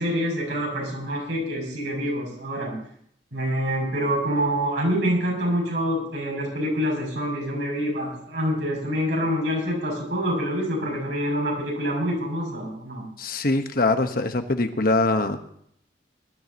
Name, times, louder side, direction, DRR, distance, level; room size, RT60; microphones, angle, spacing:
voice 1, 0.0-2.7 3.3-13.0, equal, 75° right, -2 dB, 7.1 m, -26 dB
voice 2, 13.2-15.4, left 2 dB, 55° left, 7 dB, 1.2 m, -23 dB
21.5 x 13.0 x 2.9 m, 0.66 s
head